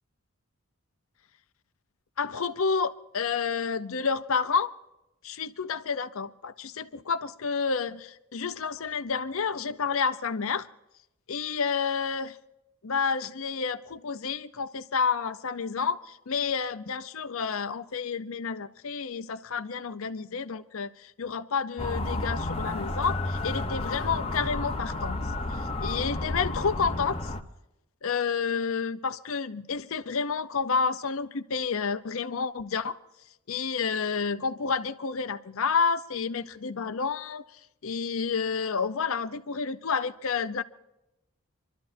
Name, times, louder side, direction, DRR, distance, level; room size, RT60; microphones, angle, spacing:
voice 1, 2.2-4.7 5.2-10.7 11.3-12.4 12.8-25.2 25.5-27.3 28.0-33.0 33.5-40.6, left 5 dB, 70° left, 0.6 m, -30 dB
Motor vehicle (road) / Siren, 21.8-27.4, left 2 dB, 25° left, 0.9 m, -31 dB
27.5 x 12.5 x 2.6 m
head